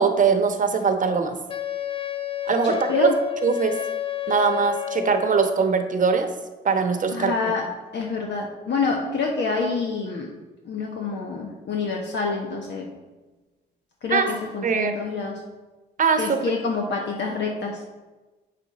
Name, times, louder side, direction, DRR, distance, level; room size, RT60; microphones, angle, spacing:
voice 1, 0.0-1.4 2.5-3.1 3.4-3.7 4.3-6.3 6.6-7.3 14.1-14.2 14.6-14.9 16.0-16.4, right 5 dB, 40° right, 6 dB, 0.9 m, -21 dB
Wind instrument woodwind instrument, 1.5-5.6, left 13 dB, 25° left, 0.4 m, -30 dB
voice 2, 2.6-3.2 7.1-7.6 7.9-10.3 10.6-12.9 14.0-15.4 16.2-17.8, left 4 dB, 60° left, 1 dB, 1.0 m, -27 dB
7.7 x 6.1 x 4.0 m, 1.2 s
cardioid pair, 90°, 20 cm